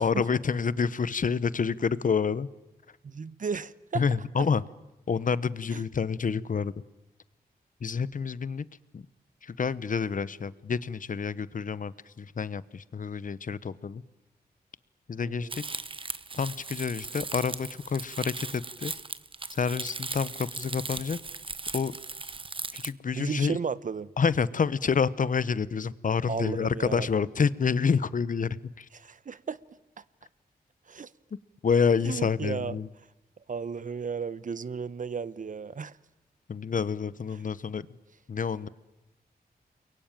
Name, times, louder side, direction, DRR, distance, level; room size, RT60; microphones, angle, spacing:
voice 1, 0.0-2.5 3.9-4.6 5.1-6.7 7.8-8.7 8.9-9.0 9.4-14.0 15.1-15.6 16.3-18.9 19.5-21.2 21.7-22.0 22.7-23.6 24.2-28.9 31.6-32.9 36.5-37.9 38.3-38.7, left 6 dB, 55° left, 0.9 m, -28 dB
voice 2, 3.0-4.0 5.7-5.8 15.2-15.5 23.1-24.1 26.3-27.1 28.9-29.6 30.0-30.1 30.9-31.1 32.0-32.8 33.5-36.0, right 6 dB, 55° right, 0.9 m, -34 dB
Crumpling crinkling, 15.5-22.9, right 3 dB, 35° right, 1.0 m, -38 dB
29.5 x 22.5 x 9.0 m
cardioid pair, 70°, 16 cm